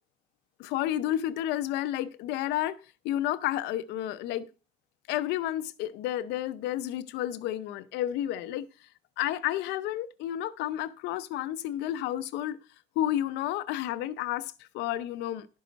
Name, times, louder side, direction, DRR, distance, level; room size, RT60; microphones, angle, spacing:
voice 1, 0.6-2.8 3.0-4.5 5.1-8.7 9.2-12.6 13.0-15.5, left 13 dB, 90° left, 0.7 m, -31 dB
12.0 x 5.6 x 5.2 m
cardioid pair, 110°, 17 cm